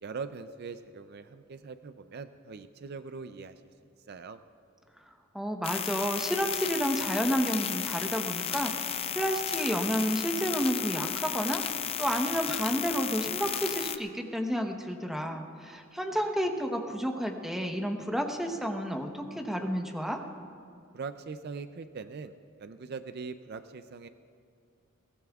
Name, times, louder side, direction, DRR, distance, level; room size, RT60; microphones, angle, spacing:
voice 1, 0.0-3.6 4.1-4.4 20.9-24.1, right 5 dB, 50° right, 10 dB, 0.4 m, -41 dB
voice 2, 5.3-11.6 12.0-20.2, equal, ahead, 3 dB, 0.9 m, -31 dB
sound 1, 5.6-14.0, left 8 dB, 30° left, 0.4 m, -34 dB
22.0 x 18.0 x 2.4 m, 2.3 s
head